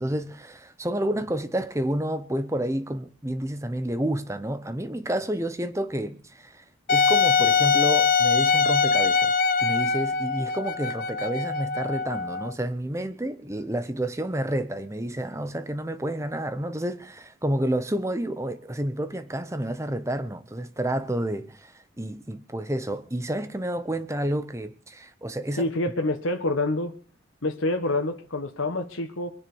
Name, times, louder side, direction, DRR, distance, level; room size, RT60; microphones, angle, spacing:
voice 1, 0.0-25.7, right 1 dB, 15° right, 0.8 m, -30 dB
Wind instrument woodwind instrument, 6.9-12.5, left 5 dB, 45° left, 1.0 m, -22 dB
voice 2, 25.6-26.9 27.4-29.3, left 2 dB, 90° left, 1.5 m, -27 dB
22.5 x 10.0 x 6.2 m
head